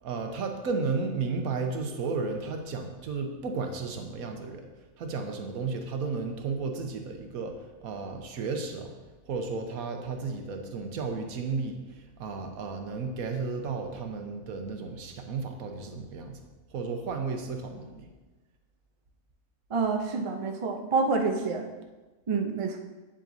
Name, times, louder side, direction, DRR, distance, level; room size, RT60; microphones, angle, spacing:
voice 1, 0.0-4.7 5.0-7.6 7.8-8.9 9.3-16.4 16.7-18.1, right 4 dB, 85° right, 4 dB, 1.3 m, -33 dB
voice 2, 19.7-21.7 22.3-22.8, right 4 dB, 45° right, 4 dB, 0.4 m, -27 dB
8.5 x 7.5 x 2.7 m, 1.2 s
omnidirectional pair, 1.5 m